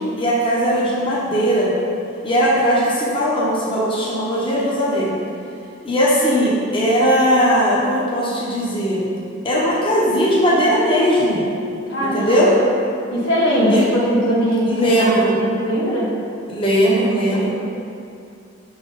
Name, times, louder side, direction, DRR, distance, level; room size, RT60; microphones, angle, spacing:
voice 1, 0.0-1.7 2.2-5.2 5.8-9.1 9.4-11.4 12.0-12.5 13.7-13.8 14.7-15.4 16.5-17.5, equal, 25° left, -6 dB, 1.0 m, -18 dB
voice 2, 11.9-12.5 13.1-15.1 15.5-16.1, equal, 85° left, -6 dB, 1.5 m, -19 dB
6.1 x 4.0 x 5.5 m, 2.5 s
head